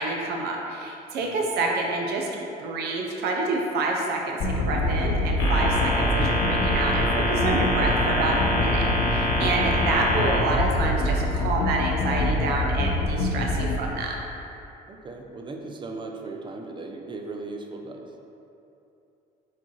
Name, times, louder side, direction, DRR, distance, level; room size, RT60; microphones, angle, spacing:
voice 1, 0.0-14.2, right 3 dB, 75° right, 0 dB, 0.6 m, -28 dB
sound 1, 4.4-13.8, left 1 dB, 50° left, 0.5 m, -25 dB
sound 2, 5.4-10.4, left 1 dB, 75° left, 1.0 m, -26 dB
voice 2, 14.9-18.1, right 3 dB, 30° right, 2 dB, 0.4 m, -38 dB
4.4 x 4.1 x 2.9 m, 2.8 s
cardioid pair, 110°, 17 cm